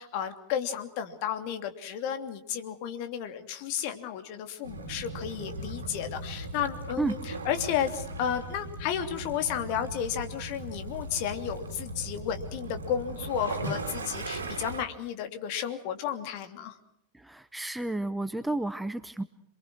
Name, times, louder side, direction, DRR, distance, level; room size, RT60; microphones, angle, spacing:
voice 1, 0.0-7.2 7.4-16.8, left 9 dB, 45° left, 8 dB, 2.9 m, -33 dB
Waves surf / Splash splatter / Trickle dribble, 4.6-14.8, right 2 dB, 70° right, 2.6 m, -38 dB
voice 2, 17.1-19.2, right 2 dB, 5° right, 12 dB, 1.0 m, -31 dB
27.5 x 23.5 x 6.3 m, 0.75 s
figure-of-eight pair, 90°, 0 cm